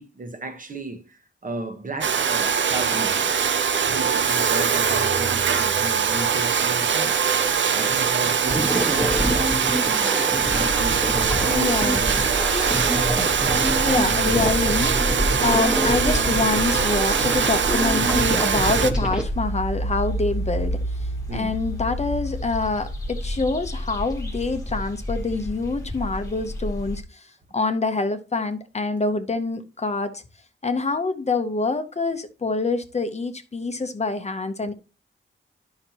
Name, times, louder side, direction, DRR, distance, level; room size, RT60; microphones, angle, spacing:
voice 1, 0.0-3.4 3.9-7.2 7.7-10.0 10.4-12.0 21.3-21.6, right 2 dB, 40° right, 1.1 m, -34 dB
Domestic sounds home sounds, 2.0-18.9, right 7 dB, 65° right, 0.6 m, -22 dB
sound 1, 8.4-19.2, equal, 5° right, 1.3 m, -27 dB
sound 2, 10.5-27.0, equal, 15° left, 1.4 m, -31 dB
voice 2, 11.5-12.0 13.8-27.3 27.5-30.2 30.6-34.7, left 3 dB, 30° left, 0.8 m, -26 dB
11.0 x 5.7 x 2.9 m
wide cardioid pair, 160°, 21 cm